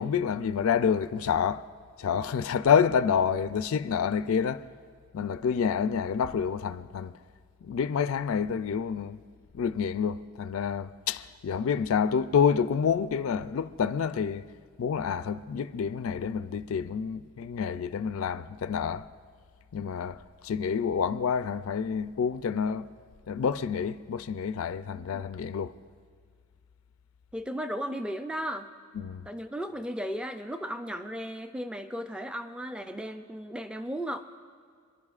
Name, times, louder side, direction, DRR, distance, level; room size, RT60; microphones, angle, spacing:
voice 1, 0.0-1.7 2.0-4.6 5.1-7.1 7.6-9.2 9.5-14.5 14.8-19.1 19.7-22.9 23.3-25.7 29.0-29.2, left 7 dB, 70° left, 0.4 m, -28 dB
voice 2, 27.3-28.7 29.3-34.2, equal, 5° right, 0.4 m, -35 dB
28.5 x 11.5 x 2.4 m
head